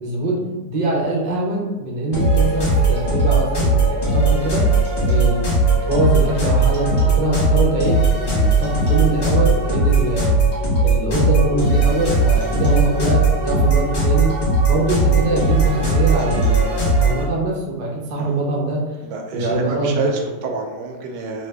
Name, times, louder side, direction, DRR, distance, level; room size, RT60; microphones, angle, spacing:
voice 1, 0.0-5.4 5.8-14.3 14.6-18.8 19.3-20.1, right 2 dB, 60° right, -3 dB, 0.4 m, -23 dB
sound 1, 2.1-17.2, right 2 dB, 40° left, 1.2 m, -18 dB
voice 2, 19.0-21.5, right 3 dB, 80° right, 2 dB, 1.2 m, -27 dB
3.1 x 2.1 x 3.3 m, 1.1 s
omnidirectional pair, 1.8 m